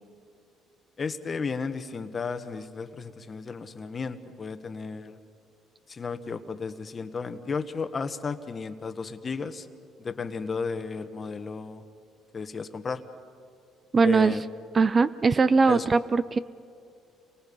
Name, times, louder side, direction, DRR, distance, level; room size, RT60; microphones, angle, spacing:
voice 1, 1.0-5.2 5.9-9.7 10.0-11.8 12.3-13.0 14.0-14.4 15.7-15.9, left 5 dB, 35° left, 9 dB, 1.3 m, -33 dB
voice 2, 13.9-14.3 14.7-16.4, right 4 dB, 30° right, 15 dB, 0.6 m, -21 dB
30.0 x 24.0 x 5.5 m, 2.4 s
cardioid pair, 95°, 0 cm